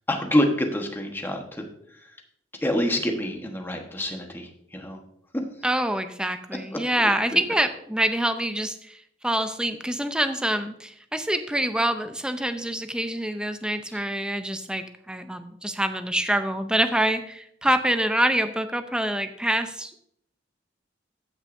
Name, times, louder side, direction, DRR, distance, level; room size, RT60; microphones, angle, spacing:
voice 1, 0.1-1.6 1.9-2.1 2.6-5.0 5.3-5.4 6.7-6.8 7.3-7.4 13.9-14.0, left 1 dB, 10° left, 2 dB, 1.1 m, -26 dB
voice 2, 5.6-20.0, right 1 dB, 5° right, 9 dB, 0.5 m, -26 dB
14.0 x 6.3 x 2.6 m, 0.71 s
head